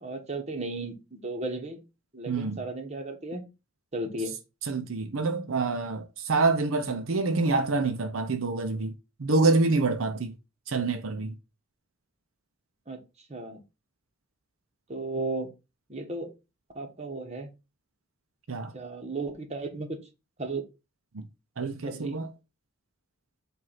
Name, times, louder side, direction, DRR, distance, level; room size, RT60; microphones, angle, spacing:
voice 1, 0.0-1.8 2.1-3.4 3.9-4.3 12.9-13.0 13.3-13.6 14.9-15.5 15.9-16.3 16.7-17.5 18.7-20.0 20.4-20.6 21.8-22.2, right 2 dB, 30° right, 1.2 m, -34 dB
voice 2, 2.3-2.6 4.6-8.9 9.2-10.3 10.7-11.3 18.5-18.7 21.1-21.2 21.6-22.3, right 3 dB, 75° right, 0.7 m, -26 dB
7.7 x 2.6 x 5.8 m
head